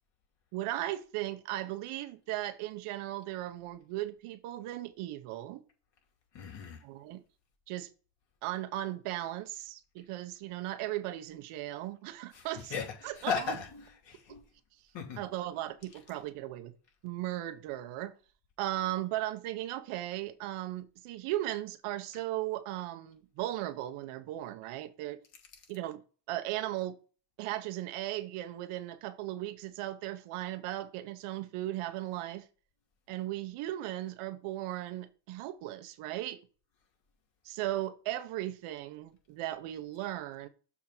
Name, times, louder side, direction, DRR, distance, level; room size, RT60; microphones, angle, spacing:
voice 1, 0.5-5.6 6.8-7.2 7.7-7.9 8.4-12.7 13.0-13.6 15.2-16.7 17.0-18.1 18.6-25.2 25.7-26.0 26.3-27.0 27.4-32.5 33.1-36.4 37.4-40.5, right 14 dB, 80° right, 1.0 m, -37 dB
voice 2, 6.3-6.8 12.3-14.4 14.9-15.2 15.9-16.2 25.5-25.6, left 6 dB, 60° left, 2.9 m, -37 dB
7.0 x 3.7 x 6.0 m
cardioid pair, 110°, 50 cm